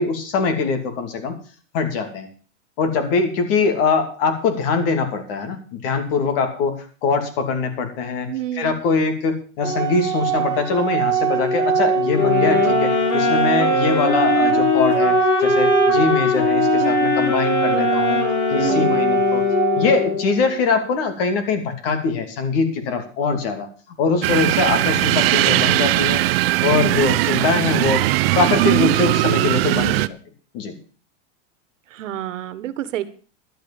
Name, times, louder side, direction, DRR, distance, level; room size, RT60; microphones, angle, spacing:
voice 1, 0.0-1.4 1.7-2.3 2.8-18.2 18.5-19.4 19.8-26.2 26.6-28.0 28.4-30.2 30.5-30.7, left 4 dB, 50° left, 7 dB, 3.0 m, -22 dB
voice 2, 8.3-8.8 18.5-19.1 31.9-33.1, right 11 dB, 80° right, 13 dB, 1.5 m, -28 dB
Organ, 9.6-20.6, right 5 dB, 10° right, 1.3 m, -22 dB
sound 1, 12.1-20.3, left 5 dB, 65° left, 3.7 m, -21 dB
sound 2, 24.2-30.1, right 17 dB, 50° right, 0.7 m, -19 dB
12.0 x 8.6 x 7.1 m, 0.39 s
supercardioid pair, 160°, 37 cm